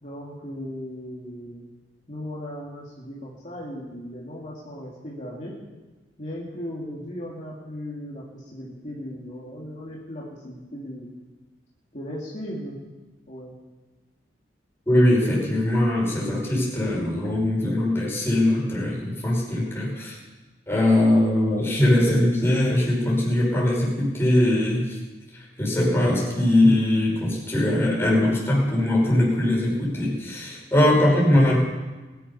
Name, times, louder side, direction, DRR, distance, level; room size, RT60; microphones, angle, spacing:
voice 1, 0.0-1.6 2.1-5.6 6.2-11.1 11.9-12.8 13.3-13.5, equal, 45° left, -6 dB, 2.7 m, -37 dB
voice 2, 14.9-20.2 20.7-25.0 25.3-31.5, left 1 dB, 15° left, -4 dB, 5.3 m, -21 dB
21.5 x 10.5 x 5.7 m, 1.2 s
head